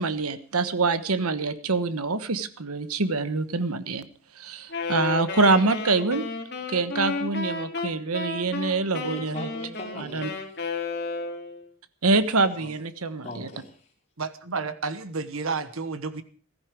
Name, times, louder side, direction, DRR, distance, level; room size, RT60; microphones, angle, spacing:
voice 1, 0.0-4.1 4.4-6.2 6.7-9.5 10.0-10.3 12.0-13.5, right 3 dB, 85° right, 12 dB, 1.2 m, -25 dB
Wind instrument woodwind instrument, 4.7-11.7, left 3 dB, 50° left, 2.4 m, -32 dB
voice 2, 9.1-10.6 12.6-12.7 13.2-13.8, left 2 dB, 30° left, 0 dB, 4.5 m, -40 dB
voice 3, 14.2-16.2, right 4 dB, 70° right, 12 dB, 1.3 m, -31 dB
16.0 x 14.0 x 4.7 m, 0.44 s
head